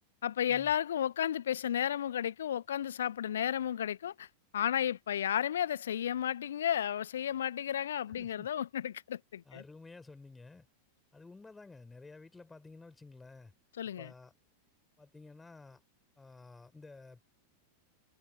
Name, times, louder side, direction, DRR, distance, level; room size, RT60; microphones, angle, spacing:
voice 1, 0.2-4.3 4.5-9.6 13.8-14.1, left 10 dB, 65° left, 0.7 m, -33 dB
voice 2, 8.2-8.5 9.4-10.7 11.1-13.5 14.0-14.3 15.0-15.8 16.2-17.2, left 3 dB, 10° left, 4.3 m, -52 dB
figure-of-eight pair, 90°, 0 cm